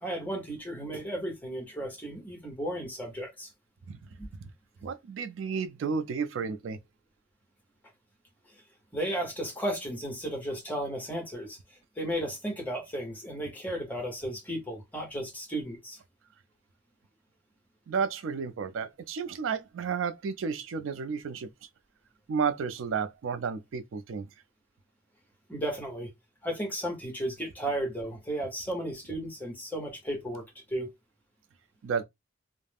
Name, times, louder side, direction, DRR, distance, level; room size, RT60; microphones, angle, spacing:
voice 1, 0.0-3.5 4.2-4.3 8.9-11.6 12.0-16.0 25.5-26.1 26.4-30.9, right 1 dB, 10° left, 0.9 m, -34 dB
voice 2, 4.8-6.8 17.9-21.5 22.3-24.3 31.8-32.0, right 6 dB, 80° right, 0.4 m, -32 dB
2.3 x 2.1 x 3.3 m
head